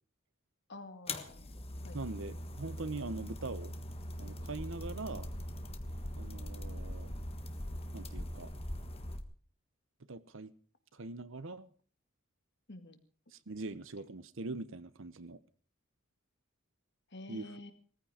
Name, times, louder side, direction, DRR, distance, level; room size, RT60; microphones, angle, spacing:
voice 1, 0.7-1.4 1.8-2.0 12.7-13.0 17.1-17.7, left 2 dB, 55° left, 2.1 m, -48 dB
sound 1, 1.1-9.2, left 1 dB, 30° left, 1.4 m, -41 dB
voice 2, 1.9-3.7 4.2-5.3 6.2-7.1 7.9-8.5 10.1-10.5 10.9-11.7 13.3-15.4 17.3-17.5, right 3 dB, 65° right, 1.0 m, -42 dB
18.5 x 14.5 x 5.0 m
head